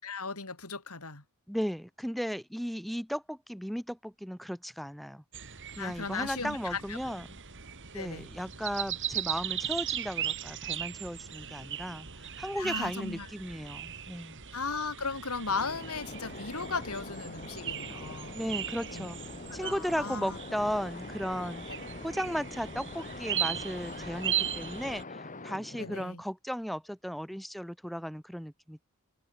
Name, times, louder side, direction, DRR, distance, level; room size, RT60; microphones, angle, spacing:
voice 1, 0.0-1.2 5.8-7.0 7.9-8.3 12.6-13.3 14.5-18.4 18.9-19.1 19.5-20.4 21.7-21.8 25.8-26.2, left 4 dB, 75° left, 4.5 m, -36 dB
voice 2, 1.5-5.2 5.8-7.4 7.9-14.4 18.3-19.2 19.5-21.6 22.0-28.8, equal, ahead, 6.6 m, -36 dB
sound 1, 5.3-25.0, right 10 dB, 60° right, 3.2 m, -38 dB
sound 2, 15.5-26.0, left 2 dB, 35° left, 3.5 m, -44 dB
open air
head